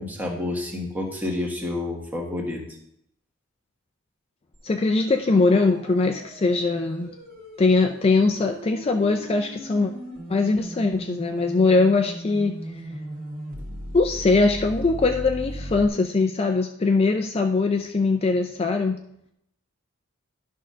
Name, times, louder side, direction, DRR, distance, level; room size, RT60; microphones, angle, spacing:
voice 1, 0.0-2.6, left 2 dB, 10° right, -1 dB, 1.4 m, -29 dB
sound 1, 4.5-15.9, equal, 45° right, 1.7 m, -38 dB
voice 2, 4.6-7.1 7.6-9.9 10.3-12.6 13.9-19.0, left 3 dB, 30° left, 5 dB, 0.4 m, -21 dB
11.0 x 3.7 x 5.5 m, 0.75 s
head